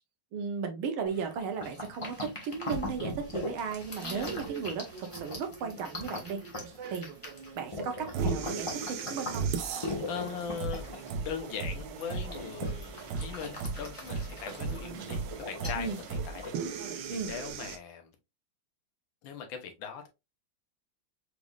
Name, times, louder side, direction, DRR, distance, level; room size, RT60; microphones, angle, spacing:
voice 1, 0.3-6.4 6.9-7.1 7.6-9.5 15.7-16.0 17.1-17.3, right 6 dB, 90° right, 1.7 m, -35 dB
sound 1, 1.1-16.9, left 2 dB, 20° left, 1.1 m, -41 dB
sound 2, 2.7-17.8, right 5 dB, 70° right, 1.3 m, -38 dB
voice 2, 10.1-10.8 11.2-15.2 15.5-18.1 19.2-20.1, left 7 dB, 70° left, 1.6 m, -40 dB
4.9 x 3.5 x 2.4 m
omnidirectional pair, 2.2 m